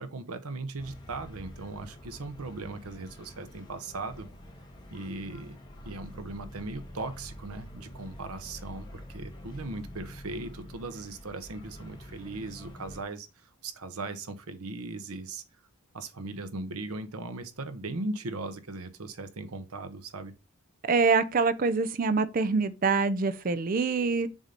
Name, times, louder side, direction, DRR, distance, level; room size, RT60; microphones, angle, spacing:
voice 1, 0.0-4.3 4.9-5.6 5.8-13.3 13.6-15.4 15.9-20.3, right 2 dB, 90° right, 0.8 m, -38 dB
sound 1, 0.8-13.0, left 1 dB, 20° left, 1.0 m, -46 dB
voice 2, 20.8-24.3, right 4 dB, 40° right, 0.4 m, -25 dB
7.2 x 2.7 x 5.1 m
head